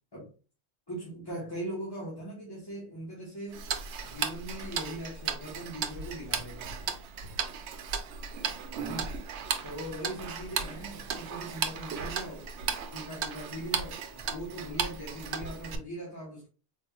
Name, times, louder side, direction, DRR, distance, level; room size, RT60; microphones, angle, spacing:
voice 1, 0.9-3.6 4.0-6.9 8.7-9.1 9.6-12.5 12.9-16.5, right 1 dB, 20° left, 1.2 m, -40 dB
Tick-tock, 3.5-15.8, right 6 dB, 90° right, 0.9 m, -35 dB
4.2 x 2.4 x 3.0 m
omnidirectional pair, 1.1 m